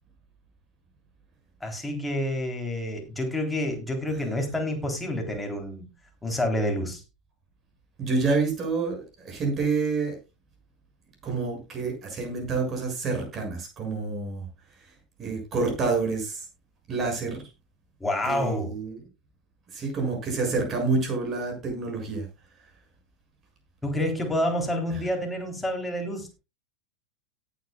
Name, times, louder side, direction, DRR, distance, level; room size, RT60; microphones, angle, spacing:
voice 1, 1.6-5.9 6.2-7.0 18.0-18.8 23.8-26.3, left 1 dB, 5° left, 3.6 m, -28 dB
voice 2, 8.0-10.2 11.2-14.5 15.2-16.4 16.9-17.4 18.3-19.0 19.7-22.3, right 4 dB, 25° right, 7.0 m, -28 dB
17.5 x 8.2 x 2.4 m
figure-of-eight pair, 90°, 0 cm